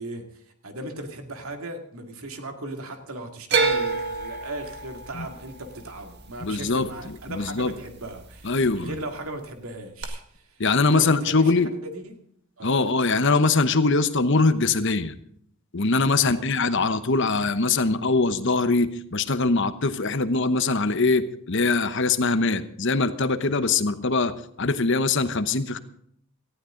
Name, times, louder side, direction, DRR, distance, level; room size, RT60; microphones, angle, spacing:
voice 1, 0.0-11.6 11.8-12.2 12.6-12.8 16.2-16.5, right 1 dB, 75° right, 5 dB, 2.4 m, -38 dB
sound 1, 3.5-7.7 8.0-8.7 10.0-10.1, right 4 dB, 50° right, 1.9 m, -28 dB
voice 2, 6.4-7.7 8.4-8.9 10.6-11.7 12.6-15.1 15.7-24.3 24.6-25.8, left 3 dB, 55° left, 12 dB, 1.0 m, -22 dB
18.5 x 14.5 x 3.9 m, 0.68 s
head